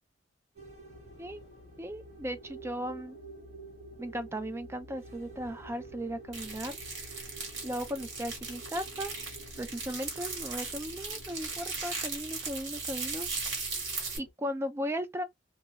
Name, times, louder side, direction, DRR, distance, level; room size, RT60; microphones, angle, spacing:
sound 1, 0.5-14.1, right 4 dB, 35° right, 1.1 m, -51 dB
sound 2, 0.9-14.3, left 4 dB, 60° left, 0.5 m, -55 dB
voice 1, 1.8-3.2 4.0-6.8 7.6-9.1 9.6-13.3 14.2-15.2, equal, 15° right, 0.3 m, -36 dB
sound 3, 6.3-14.2, right 4 dB, 60° right, 1.2 m, -38 dB
2.3 x 2.2 x 2.8 m
head